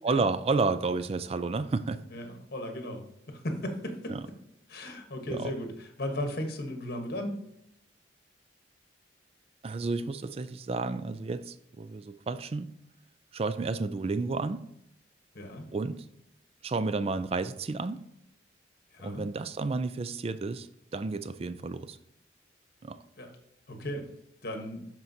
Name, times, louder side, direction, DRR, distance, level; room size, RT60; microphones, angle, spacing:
voice 1, 0.0-2.0 4.1-4.2 5.3-5.5 9.6-12.7 13.3-14.6 15.7-16.0 16.6-18.0 19.0-22.0 22.8-23.0, right 3 dB, 30° right, 13 dB, 0.3 m, -31 dB
voice 2, 2.1-3.0 3.3-4.2 4.7-5.7 6.0-7.4 15.3-15.6 18.9-19.2 23.2-23.3 23.7-24.1 24.4-24.8, left 1 dB, 50° left, 4 dB, 1.1 m, -36 dB
12.0 x 4.5 x 2.7 m, 0.78 s
head